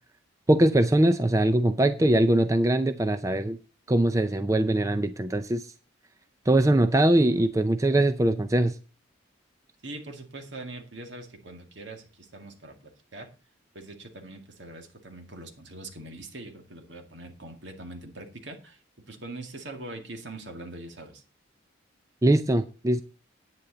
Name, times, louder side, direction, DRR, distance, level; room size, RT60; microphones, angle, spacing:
voice 1, 0.5-3.6 3.9-5.7 6.5-8.8 22.2-23.0, right 1 dB, 15° right, 10 dB, 0.4 m, -22 dB
voice 2, 9.8-13.3 13.7-18.8 19.1-21.2, right 2 dB, 70° right, 5 dB, 2.1 m, -42 dB
10.0 x 9.2 x 3.9 m, 0.33 s
head